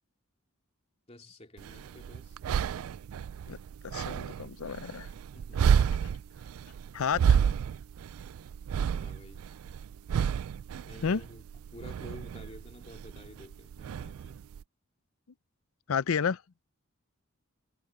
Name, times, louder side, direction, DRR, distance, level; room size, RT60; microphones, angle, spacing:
voice 1, 1.1-2.4 5.1-5.7 8.9-9.5 10.8-11.4 11.7-14.4, left 1 dB, 30° left, 2.9 m, -51 dB
sound 1, 1.6-14.6, right 7 dB, 75° right, 0.3 m, -31 dB
voice 2, 3.8-5.1 6.9-7.4 11.0-11.2 15.9-16.4, left 6 dB, 75° left, 0.5 m, -30 dB
head